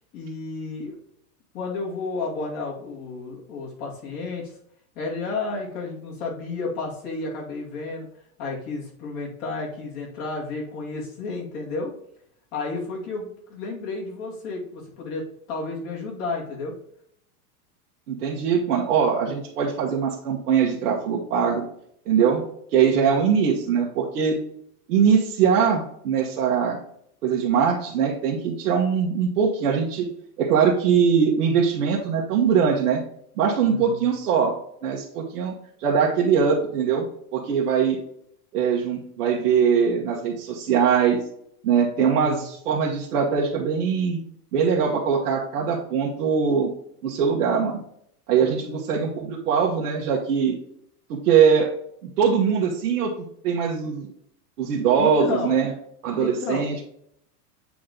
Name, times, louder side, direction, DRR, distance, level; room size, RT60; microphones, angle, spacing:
voice 1, 0.1-1.0 1.5-4.6 4.9-8.1 8.4-11.9 12.5-16.7 22.9-23.3 33.6-34.1 42.1-42.5 48.3-48.8 54.9-55.6 56.2-56.8, left 3 dB, 40° left, -4 dB, 2.4 m, -32 dB
voice 2, 18.1-21.6 22.1-22.4 22.7-24.4 24.9-26.8 27.2-30.1 30.4-33.0 33.4-34.5 34.8-35.5 35.8-37.1 37.3-38.0 38.5-41.2 41.6-44.2 44.5-46.7 47.0-47.8 48.3-50.5 51.1-51.7 52.0-53.1 53.4-54.1 54.6-55.7 56.0-56.8, right 7 dB, 75° right, -3 dB, 1.4 m, -22 dB
8.6 x 3.1 x 3.8 m, 0.70 s
supercardioid pair, 170°, 46 cm